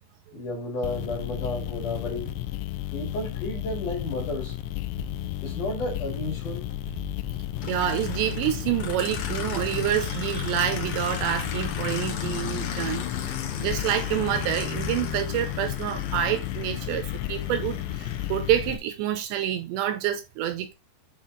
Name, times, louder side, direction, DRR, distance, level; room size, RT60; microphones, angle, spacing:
voice 1, 0.3-2.3 2.9-4.6 5.4-6.6, left 1 dB, 50° left, 2.9 m, -32 dB
sound 1, 0.8-18.8, left 15 dB, 90° left, 2.5 m, -33 dB
Aircraft, 7.6-18.7, left 7 dB, 65° left, 2.3 m, -36 dB
voice 2, 7.6-13.0 13.6-20.7, right 11 dB, 80° right, 2.7 m, -27 dB
8.6 x 3.7 x 3.9 m
omnidirectional pair, 5.6 m